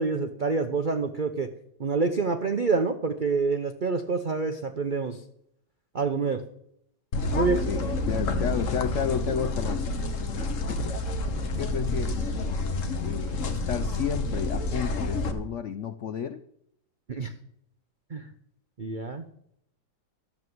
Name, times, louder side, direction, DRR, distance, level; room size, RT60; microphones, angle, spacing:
voice 1, 0.0-1.5 1.8-5.2 5.9-6.4 7.3-7.6 17.1-17.3 18.1-18.3 18.8-19.2, right 4 dB, 70° right, 8 dB, 0.4 m, -27 dB
sound 1, 7.1-15.3, left 2 dB, 50° left, 1.3 m, -29 dB
voice 2, 7.7-9.9 10.4-10.9 11.6-12.3 13.0-16.4, left 8 dB, 80° left, 12 dB, 0.6 m, -32 dB
12.0 x 7.3 x 7.8 m, 0.73 s
omnidirectional pair, 2.0 m